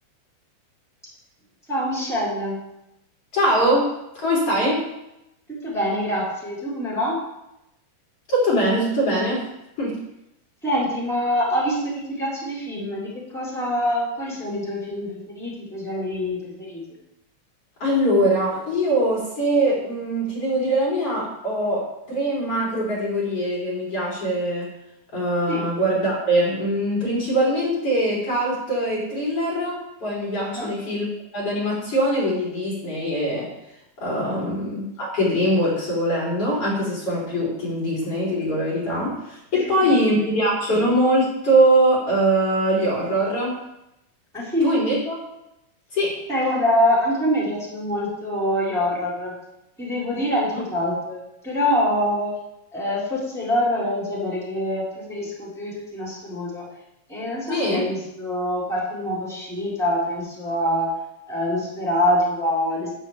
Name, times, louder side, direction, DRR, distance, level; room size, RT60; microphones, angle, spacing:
voice 1, 1.7-2.6 5.6-7.2 10.6-11.8 12.2-15.1 15.3-16.8 25.5-25.7 30.4-30.7 34.3-34.5 39.5-39.9 44.3-44.8 46.3-49.3 49.8-52.3 52.7-56.6 57.1-60.9 61.3-62.9, left 1 dB, ahead, -6 dB, 4.5 m, -25 dB
voice 2, 3.3-4.9 8.3-9.4 9.8-10.0 17.8-24.7 25.1-33.5 34.0-43.6 44.6-45.1 45.9-46.1 50.5-50.6 57.5-57.8, right 1 dB, 45° left, -6 dB, 4.5 m, -22 dB
12.5 x 11.0 x 3.5 m, 0.86 s
omnidirectional pair, 3.7 m